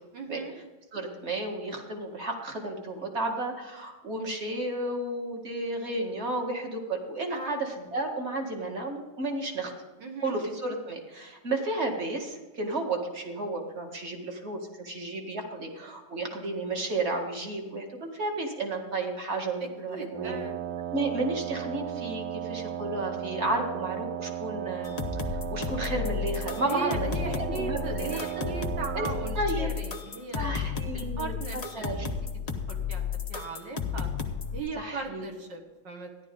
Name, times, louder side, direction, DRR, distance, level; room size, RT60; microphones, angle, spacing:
voice 1, 0.1-0.5 7.3-7.6 10.0-10.4 19.6-20.5 26.7-30.6 30.9-32.1 32.7-34.1 34.5-36.1, right 4 dB, 55° right, 3 dB, 2.2 m, -38 dB
voice 2, 0.9-9.7 10.2-20.4 20.9-25.0 25.3-28.5 28.9-29.1 29.3-29.7 30.4-32.1 34.8-35.3, right 2 dB, 30° right, 2 dB, 2.0 m, -32 dB
Wind instrument woodwind instrument, 20.1-29.5, right 11 dB, 80° right, 0.8 m, -36 dB
sound 1, 24.8-34.6, left 6 dB, 40° left, 0.5 m, -33 dB
14.5 x 11.0 x 3.8 m, 1.2 s
omnidirectional pair, 2.4 m